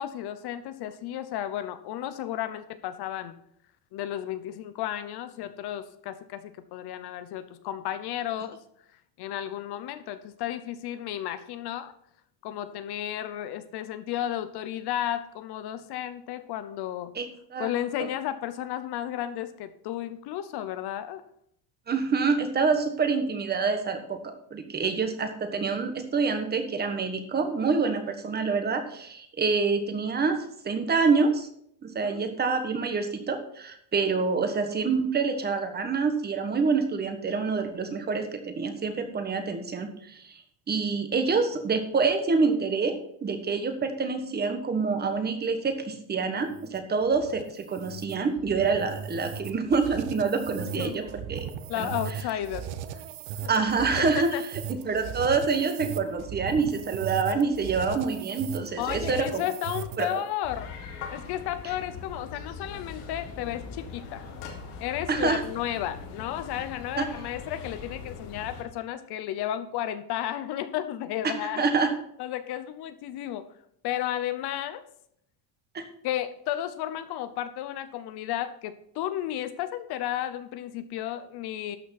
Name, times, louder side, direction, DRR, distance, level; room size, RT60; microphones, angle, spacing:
voice 1, 0.0-3.4 3.9-8.6 9.2-11.9 12.4-17.1 17.6-21.2 32.0-32.3 50.6-51.0 51.7-53.0 53.4-54.4 58.8-60.7 61.1-64.2 64.8-71.7 72.2-73.5 73.8-74.8 76.0-81.8, left 12 dB, 55° left, 11 dB, 0.9 m, -33 dB
voice 2, 21.9-24.2 24.5-31.5 31.8-40.4 40.7-43.0 43.2-51.5 51.8-51.9 53.5-54.3 54.9-59.4 60.0-60.2 65.1-65.4 67.0-67.1 71.2-71.9 75.7-75.8, right 4 dB, 20° right, 7 dB, 1.3 m, -26 dB
sound 1, 46.4-60.3, right 8 dB, 75° right, 1.1 m, -38 dB
sound 2, 60.4-68.6, left 5 dB, 75° left, 4.1 m, -41 dB
12.5 x 6.1 x 5.9 m, 0.69 s
cardioid pair, 165°, 49 cm